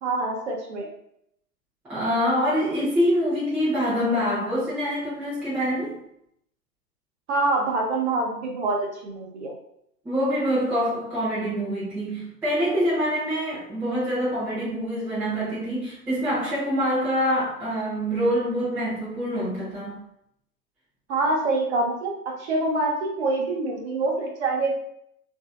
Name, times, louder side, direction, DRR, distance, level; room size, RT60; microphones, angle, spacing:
voice 1, 0.0-0.9 7.3-9.5 21.1-24.7, right 2 dB, 45° right, 0 dB, 0.7 m, -25 dB
voice 2, 1.9-6.0 10.0-20.0, equal, 5° right, -10 dB, 0.6 m, -25 dB
3.2 x 2.6 x 2.2 m, 0.75 s
figure-of-eight pair, 120°, 49 cm